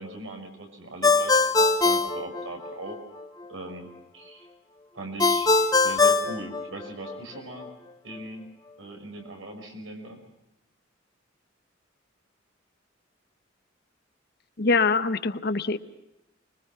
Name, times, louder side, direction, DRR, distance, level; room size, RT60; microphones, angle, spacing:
voice 1, 0.0-3.0 3.5-4.5 4.9-5.5 5.8-7.7 8.0-8.5 8.8-10.2, right 1 dB, 75° right, 4 dB, 6.1 m, -39 dB
Ringtone, 1.0-3.0 5.2-7.2, left 3 dB, 20° left, 1.4 m, -21 dB
voice 2, 14.6-15.8, left 4 dB, 55° left, 12 dB, 1.1 m, -23 dB
25.0 x 22.5 x 5.9 m, 0.89 s
head